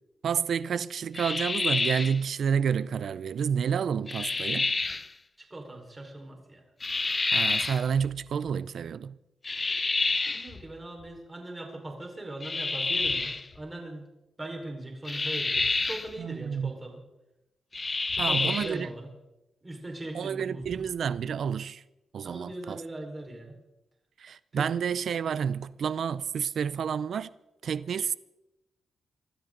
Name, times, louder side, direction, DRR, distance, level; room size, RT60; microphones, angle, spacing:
voice 1, 0.2-4.7 7.3-9.1 16.2-16.7 18.2-18.9 20.1-21.8 22.1-22.8 24.2-27.3 27.6-28.1, right 7 dB, 70° right, 0.5 m, -29 dB
sound 1, 1.1-2.2 4.1-5.1 6.8-7.8 9.4-10.5 12.4-13.4 15.1-16.1 17.7-18.8, left 3 dB, 25° left, 0.7 m, -28 dB
voice 2, 5.5-6.6 10.3-14.1 14.4-17.0 18.1-19.1 19.6-20.8 22.2-23.5 24.5-24.7, right 1 dB, 20° right, 4.6 m, -40 dB
sound 2, 7.9-8.5 10.5-11.1 13.0-13.6 15.5-16.1 18.1-18.7 20.6-21.2, left 4 dB, 60° left, 6.2 m, -49 dB
26.0 x 13.0 x 3.9 m
cardioid pair, 80°, 0 cm